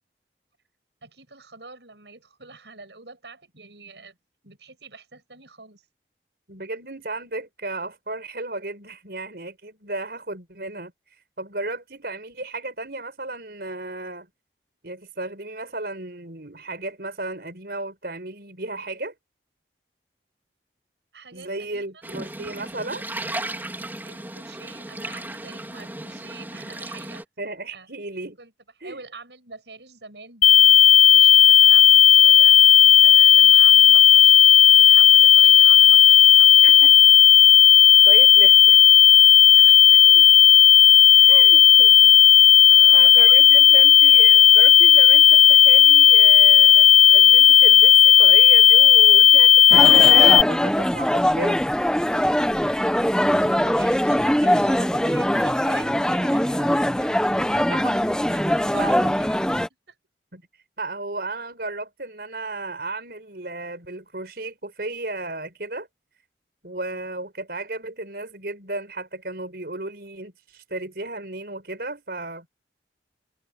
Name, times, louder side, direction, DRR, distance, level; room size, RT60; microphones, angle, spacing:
voice 1, 1.0-4.2 4.4-5.8 21.1-22.0 24.0-27.2 27.7-27.9 28.4-28.5 28.8-36.9 39.5-40.3 41.1-41.4 42.7-43.7 45.0-45.1 52.6-57.2 58.2-59.4 59.9-60.0, right 3 dB, 80° right, 8.0 m, -45 dB
voice 2, 6.5-14.3 14.8-19.1 21.3-23.0 27.4-28.4 28.8-29.0 36.6-36.9 38.1-38.8 40.1-40.3 41.3-42.5 42.9-51.6 57.5-57.9 58.7-59.1 60.3-60.4 60.8-65.9 66.6-72.5, right 2 dB, 60° right, 5.8 m, -34 dB
sound 1, 22.0-27.2, right 1 dB, 10° right, 3.6 m, -35 dB
sound 2, 30.4-50.4, left 9 dB, 40° left, 0.5 m, -12 dB
sound 3, 49.7-59.7, equal, 5° left, 1.0 m, -22 dB
head